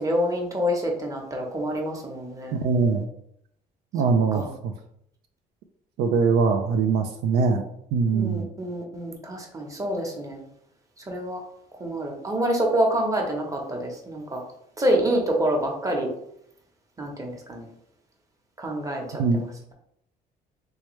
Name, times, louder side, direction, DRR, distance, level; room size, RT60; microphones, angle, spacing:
voice 1, 0.0-2.6 4.3-4.5 8.1-10.4 11.1-11.4 11.8-14.4 14.8-16.1 17.0-17.6 18.6-19.5, equal, 20° right, 1 dB, 0.9 m, -27 dB
voice 2, 2.5-3.0 3.9-4.4 6.0-7.6 7.9-8.5 19.2-19.4, right 5 dB, 75° right, 5 dB, 0.5 m, -22 dB
3.4 x 3.1 x 3.1 m, 0.71 s
cardioid pair, 110°, 17 cm